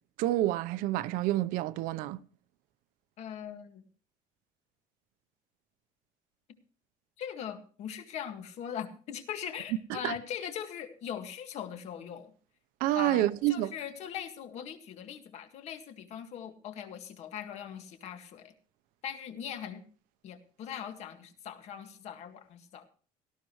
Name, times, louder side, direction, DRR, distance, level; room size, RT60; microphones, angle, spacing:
voice 1, 0.2-2.2 9.9-10.1 12.8-13.7, right 14 dB, 75° right, 0.8 m, -28 dB
voice 2, 3.2-3.9 7.2-12.3 12.9-18.5 19.0-19.8 20.2-22.9, left 9 dB, 50° left, 1.9 m, -40 dB
18.5 x 13.0 x 3.1 m
cardioid pair, 160°, 14 cm